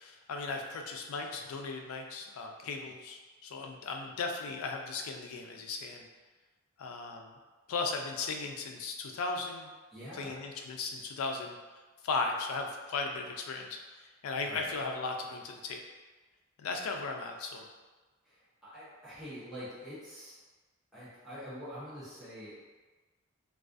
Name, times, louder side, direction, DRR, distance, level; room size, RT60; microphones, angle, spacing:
voice 1, 0.0-6.1 6.8-7.4 7.7-9.7 10.1-11.6 12.0-15.8 16.6-17.7, left 3 dB, 80° left, 3 dB, 0.3 m, -37 dB
voice 2, 9.9-10.4 14.5-14.7 18.2-20.3 20.9-22.5, equal, ahead, -12 dB, 0.6 m, -45 dB
2.3 x 2.3 x 2.4 m, 1.3 s
head